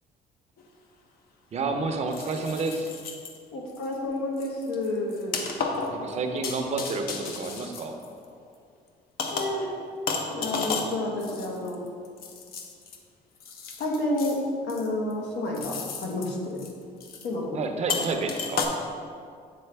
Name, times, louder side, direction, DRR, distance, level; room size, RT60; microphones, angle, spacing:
sound 1, 0.6-0.7 2.1-3.4 3.8-4.0 4.4-8.5 9.2-9.7 10.1-13.0 13.4-14.4 14.7-15.1 15.5-16.3 16.6-16.7 17.0-17.3 17.9-18.7, left 4 dB, 65° left, 0.7 m, -33 dB
voice 1, 1.5-2.9 5.9-8.0 17.5-18.7, right 3 dB, 40° right, 4 dB, 0.6 m, -30 dB
voice 2, 3.5-5.4 9.3-9.7 10.3-11.8 13.8-14.4 14.6-16.6 17.2-17.6 17.9-18.1, left 1 dB, 90° left, -2 dB, 1.2 m, -30 dB
7.6 x 3.9 x 3.3 m, 2.2 s
cardioid pair, 110°, 17 cm